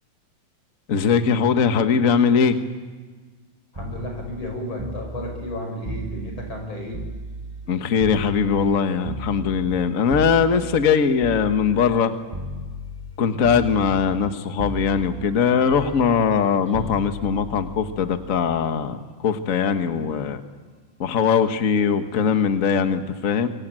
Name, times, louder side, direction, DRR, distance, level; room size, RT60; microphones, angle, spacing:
voice 1, 0.9-2.6 7.7-12.1 13.2-20.4 21.0-23.5, left 6 dB, 70° left, 8 dB, 0.7 m, -21 dB
voice 2, 3.7-7.0, left 1 dB, 40° left, 2 dB, 7.1 m, -32 dB
sound 1, 3.7-7.7 8.0-12.0 12.3-13.2 13.4-14.3 14.6-18.6 19.8-20.0, right 1 dB, 25° right, 0.6 m, -35 dB
25.0 x 24.0 x 9.0 m, 1.4 s
omnidirectional pair, 3.5 m